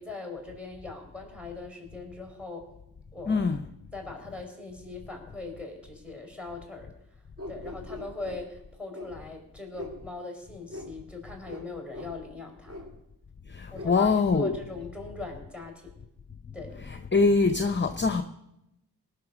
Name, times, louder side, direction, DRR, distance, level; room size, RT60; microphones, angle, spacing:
voice 1, 0.0-2.6 3.1-3.5 3.9-12.9 13.7-15.9 16.5-16.8, left 3 dB, 5° right, 4.4 m, -41 dB
voice 2, 3.3-3.7 13.5-14.5 17.1-18.2, left 4 dB, 30° left, 0.7 m, -23 dB
sound 1, 7.4-8.4 8.9-9.1 9.7-10.0 10.7-10.9 11.5-11.6 11.9-12.1 12.7-12.8 13.7-13.9, left 1 dB, 35° right, 3.2 m, -40 dB
19.0 x 6.5 x 6.2 m
cardioid pair, 60°, 39 cm